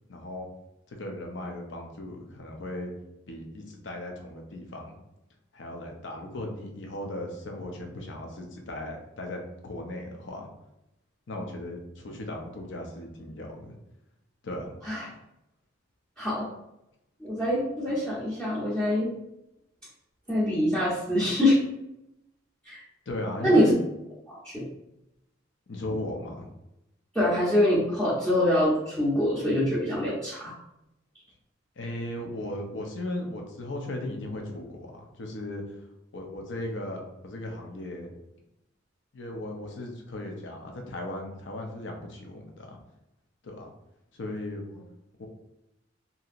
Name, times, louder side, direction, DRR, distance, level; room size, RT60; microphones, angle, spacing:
voice 1, 0.1-0.5 0.9-2.9 3.3-5.0 5.5-10.5 11.3-13.7 14.4-14.7 23.1-23.8 25.7-26.5 31.8-35.8 36.1-38.1 39.1-42.8 43.4-43.7 44.1-44.6 45.2-45.3, left 1 dB, 65° left, 2 dB, 0.6 m, -37 dB
voice 2, 16.2-16.5 17.2-19.1 20.3-21.6 22.6-22.8 23.4-23.7 24.3-24.7 27.1-30.5, left 1 dB, 5° left, -11 dB, 0.7 m, -24 dB
2.8 x 2.6 x 2.5 m, 0.87 s
head